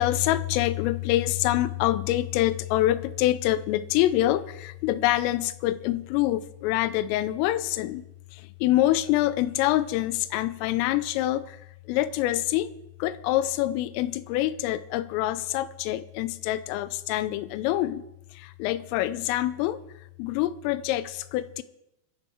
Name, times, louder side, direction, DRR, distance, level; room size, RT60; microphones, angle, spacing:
voice 1, 0.0-8.1 8.6-11.6 11.9-12.7 13.0-18.0 18.4-19.8 20.2-21.6, left 14 dB, 85° left, 3.3 m, -25 dB
25.5 x 10.5 x 4.7 m
omnidirectional pair, 5.9 m